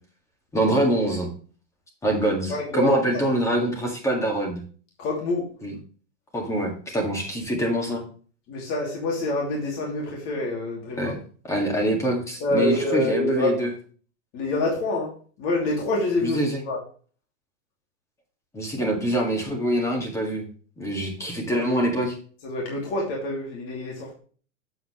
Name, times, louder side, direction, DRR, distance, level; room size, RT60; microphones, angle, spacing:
voice 1, 0.5-1.3 2.0-4.6 5.6-5.7 6.3-8.0 11.0-11.2 11.4-13.7 16.2-16.6 18.5-20.5 20.8-22.2, right 1 dB, 10° left, 1 dB, 1.9 m, -25 dB
voice 2, 2.5-3.0 5.0-5.4 8.5-11.1 12.4-13.7 14.3-15.1 15.4-16.8 22.4-24.1, left 1 dB, 35° left, -2 dB, 2.7 m, -26 dB
7.9 x 7.8 x 3.1 m, 0.41 s
supercardioid pair, 165°, 37 cm